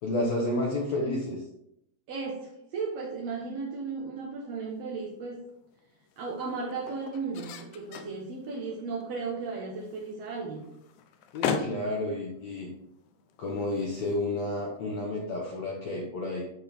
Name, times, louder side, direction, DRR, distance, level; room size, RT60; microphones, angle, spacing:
voice 1, 0.0-1.4 11.3-12.7 13.4-16.4, left 2 dB, 65° left, -3 dB, 1.9 m, -30 dB
voice 2, 2.1-5.5 6.2-10.7, right 4 dB, 70° right, -3 dB, 1.5 m, -35 dB
sound 1, 4.5-14.9, left 7 dB, 90° left, 1.7 m, -40 dB
12.0 x 4.5 x 3.4 m, 0.78 s
omnidirectional pair, 4.5 m